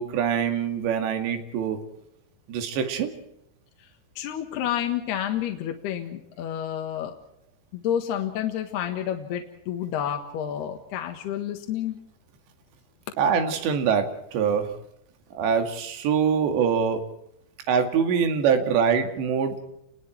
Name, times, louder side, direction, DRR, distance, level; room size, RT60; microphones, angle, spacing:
voice 1, 0.0-1.8 2.5-3.1 13.2-14.7 15.3-17.0 17.7-19.6, right 7 dB, 70° right, 6 dB, 4.4 m, -24 dB
voice 2, 4.2-7.2 7.7-12.0, left 10 dB, 65° left, 4 dB, 3.3 m, -30 dB
29.0 x 21.5 x 4.5 m, 0.77 s
omnidirectional pair, 5.5 m